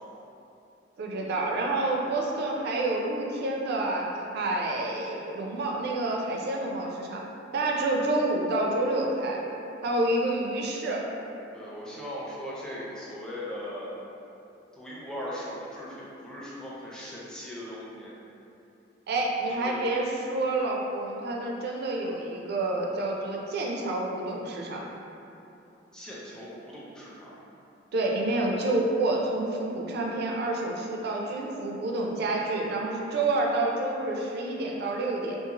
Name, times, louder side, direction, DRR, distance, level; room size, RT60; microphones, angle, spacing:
voice 1, 1.0-7.2 7.5-9.4 9.8-11.0 19.1-24.8 27.9-35.4, right 2 dB, 55° right, -1 dB, 0.4 m, -28 dB
voice 2, 11.5-13.9 14.7-18.2 19.6-19.8 25.9-27.4, equal, 5° left, -7 dB, 0.4 m, -39 dB
2.6 x 2.4 x 2.8 m, 2.8 s
head